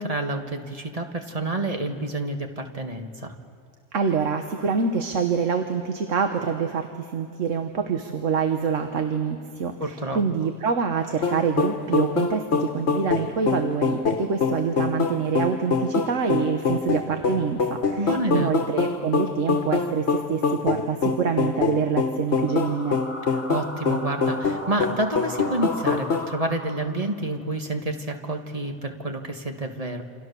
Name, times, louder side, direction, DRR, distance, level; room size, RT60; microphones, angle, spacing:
voice 1, 0.0-3.4 9.8-10.2 18.0-18.5 23.3-30.0, right 2 dB, 30° right, 4 dB, 1.7 m, -29 dB
voice 2, 3.9-23.0, right 6 dB, 85° right, 6 dB, 1.6 m, -26 dB
sound 1, 11.2-26.3, left 5 dB, 60° left, 1.6 m, -25 dB
sound 2, 22.2-27.3, equal, 10° left, 2.5 m, -39 dB
28.0 x 26.5 x 6.9 m, 2.4 s
omnidirectional pair, 1.3 m